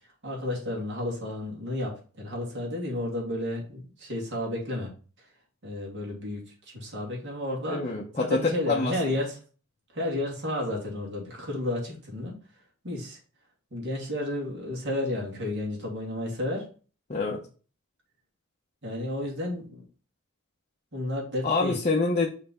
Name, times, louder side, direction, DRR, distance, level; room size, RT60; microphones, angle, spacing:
voice 1, 0.2-4.9 5.6-9.4 9.9-12.3 12.8-13.2 13.7-16.7 18.8-19.9 20.9-21.8, left 1 dB, 55° right, -2 dB, 2.5 m, -32 dB
voice 2, 7.7-8.4 8.7-8.9 17.1-17.4 21.4-22.3, left 3 dB, 30° left, 0 dB, 0.7 m, -26 dB
5.6 x 3.4 x 5.5 m, 0.38 s
head